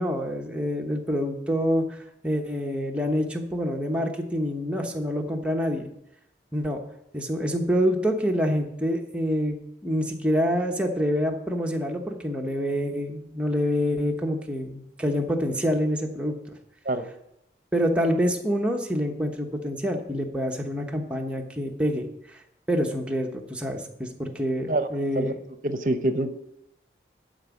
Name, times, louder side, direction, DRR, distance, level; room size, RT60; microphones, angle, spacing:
voice 1, 0.0-2.0 2.2-5.9 6.5-6.8 7.1-9.6 9.8-16.4 17.7-22.4 22.7-25.3, equal, 5° right, 1 dB, 1.0 m, -26 dB
voice 2, 25.6-26.3, right 1 dB, 45° right, 9 dB, 0.8 m, -25 dB
11.5 x 5.1 x 7.2 m, 0.78 s
head